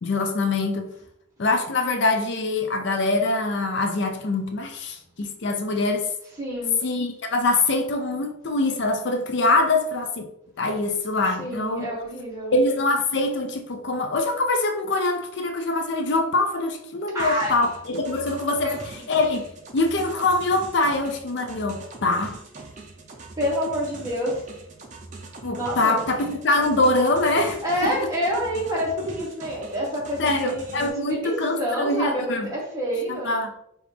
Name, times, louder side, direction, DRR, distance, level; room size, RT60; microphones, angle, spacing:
voice 1, 0.0-0.9 1.4-6.1 6.8-10.3 10.6-11.9 12.5-22.4 25.4-27.6 28.0-28.1 30.2-32.5 33.1-33.5, left 2 dB, 55° left, 5 dB, 0.5 m, -24 dB
voice 2, 6.4-6.8 11.4-12.6 17.1-17.5 18.6-18.9 23.4-24.4 25.5-26.0 27.6-33.4, equal, 15° right, -5 dB, 1.3 m, -28 dB
sound 1, 17.2-30.9, right 3 dB, 35° right, 0.6 m, -42 dB
4.9 x 2.5 x 3.3 m, 0.75 s
head